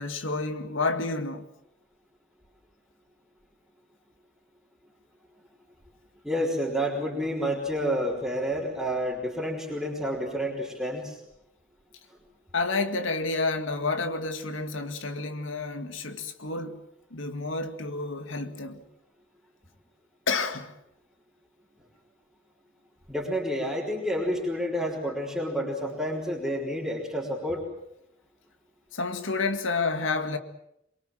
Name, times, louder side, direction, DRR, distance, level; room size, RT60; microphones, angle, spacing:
voice 1, 0.0-1.5 12.5-16.9 17.1-18.8 20.3-20.8 28.9-30.4, left 3 dB, 85° left, 2.0 m, -30 dB
voice 2, 6.2-11.2 23.1-27.6, equal, ahead, 4.0 m, -29 dB
23.5 x 23.0 x 7.7 m
head